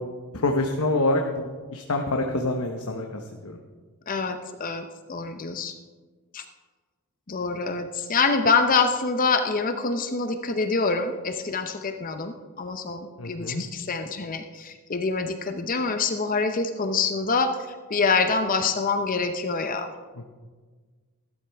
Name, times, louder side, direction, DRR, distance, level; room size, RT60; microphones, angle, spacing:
voice 1, 0.3-3.6 13.2-13.6 20.2-20.3, left 2 dB, 75° left, 3 dB, 1.0 m, -26 dB
voice 2, 4.1-5.7 6.3-6.4 7.3-19.9, left 4 dB, 40° left, 8 dB, 0.7 m, -26 dB
15.0 x 12.5 x 3.5 m, 1.4 s
head